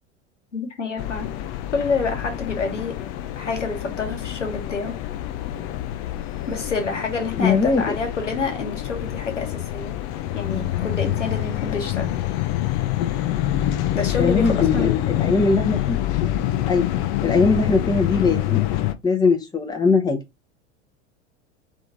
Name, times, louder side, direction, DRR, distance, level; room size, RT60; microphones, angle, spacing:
voice 1, 0.5-1.3 1.7-3.0 3.3-5.0 6.5-10.0 10.3-12.2 13.9-14.9 17.4-17.7, left 4 dB, 80° left, 1.3 m, -28 dB
sound 1, 1.0-18.9, left 13 dB, 40° left, 0.6 m, -26 dB
voice 2, 7.4-8.0 14.2-16.0 16.7-16.9 17.2-18.6 19.0-20.2, left 4 dB, 10° left, 1.0 m, -20 dB
3.7 x 3.4 x 3.9 m
figure-of-eight pair, 80°, 36 cm